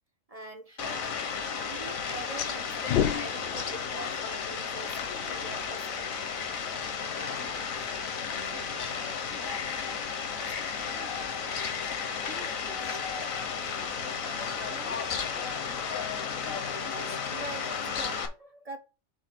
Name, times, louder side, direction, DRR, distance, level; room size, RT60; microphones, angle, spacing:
voice 1, 0.3-6.1 7.3-7.5 10.3-10.5 12.4-12.5 16.7-18.8, right 2 dB, 35° right, 0.6 m, -44 dB
Fowl, 0.8-18.3, left 6 dB, 80° left, 1.4 m, -33 dB
sound 1, 2.8-4.1, left 9 dB, 60° left, 0.7 m, -29 dB
voice 2, 6.5-15.4, right 1 dB, 55° right, 1.7 m, -51 dB
7.9 x 2.8 x 6.0 m
omnidirectional pair, 1.4 m